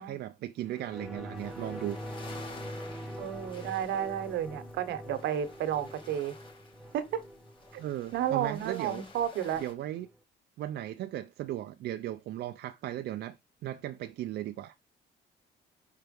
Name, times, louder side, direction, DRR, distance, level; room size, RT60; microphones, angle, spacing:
voice 1, 0.0-2.0 7.8-9.0 9.6-10.1 10.6-13.4 13.6-14.7, right 13 dB, 70° right, 0.6 m, -37 dB
sound 1, 0.7-9.7 10.0-10.1, equal, ahead, 1.1 m, -44 dB
sound 2, 1.4-9.7, left 3 dB, 25° left, 2.6 m, -52 dB
voice 2, 3.2-6.3 6.9-7.2 7.7-7.8 8.1-9.6, right 10 dB, 85° right, 1.1 m, -32 dB
5.7 x 4.6 x 5.3 m
cardioid pair, 155°, 18 cm